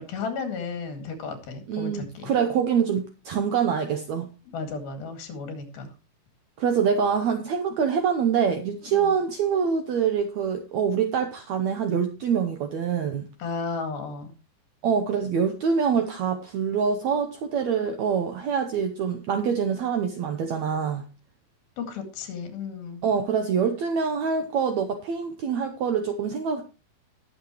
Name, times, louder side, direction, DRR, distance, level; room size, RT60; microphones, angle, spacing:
voice 1, 0.0-2.3 4.5-5.9 8.9-9.2 13.4-14.3 21.8-23.0, left 5 dB, 80° left, 4.0 m, -34 dB
voice 2, 1.7-4.3 6.6-13.3 14.8-21.0 23.0-26.6, right 6 dB, 75° right, 1.7 m, -25 dB
20.0 x 6.9 x 3.0 m
omnidirectional pair, 4.2 m